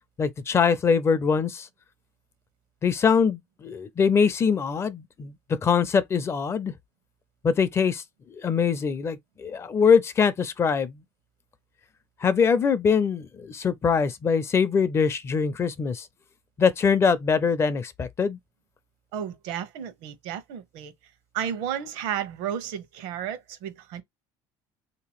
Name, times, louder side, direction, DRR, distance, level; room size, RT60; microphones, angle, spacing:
voice 1, 0.2-1.7 2.8-6.7 7.4-8.0 8.3-11.0 12.2-16.1 16.6-18.4, left 6 dB, 30° left, 0.5 m, -23 dB
voice 2, 19.1-20.9 21.3-24.0, right 9 dB, 85° right, 1.0 m, -32 dB
3.4 x 2.9 x 3.0 m
cardioid pair, 125°, 9 cm